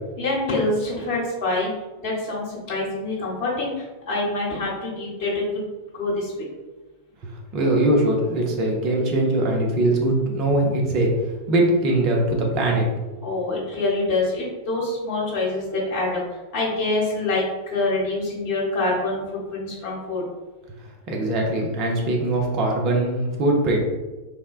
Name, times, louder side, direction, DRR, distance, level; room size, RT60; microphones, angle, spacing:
voice 1, 0.2-1.7 2.0-5.6 5.9-6.4 13.2-20.2, left 2 dB, 45° left, -4 dB, 1.1 m, -26 dB
voice 2, 7.2-11.1 11.5-12.8 21.1-23.8, right 1 dB, 40° right, 0 dB, 0.7 m, -21 dB
3.4 x 2.1 x 2.4 m, 1.2 s
figure-of-eight pair, 90°, 0 cm